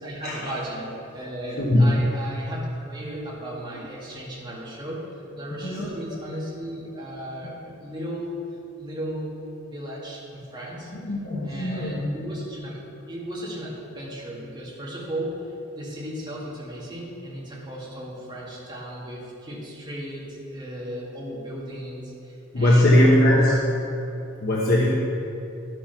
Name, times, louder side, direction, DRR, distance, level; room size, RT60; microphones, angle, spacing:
voice 1, 0.0-8.4 8.8-10.9 11.4-12.8 13.1-22.9 23.3-23.6, equal, 20° right, -6 dB, 2.1 m, -35 dB
voice 2, 1.6-1.9 5.5-5.9 10.9-12.1 22.5-23.6 24.4-25.0, left 1 dB, 45° left, -5 dB, 1.1 m, -20 dB
11.5 x 6.4 x 5.8 m, 2.8 s
head